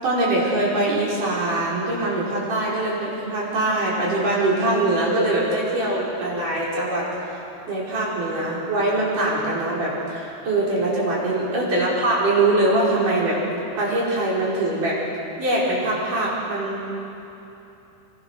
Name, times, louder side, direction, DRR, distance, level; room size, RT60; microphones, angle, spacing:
voice 1, 0.0-7.1 7.7-13.4 13.8-15.0 15.4-16.9, right 2 dB, 45° right, -5 dB, 6.9 m, -22 dB
28.0 x 23.5 x 6.6 m, 2.9 s
omnidirectional pair, 5.1 m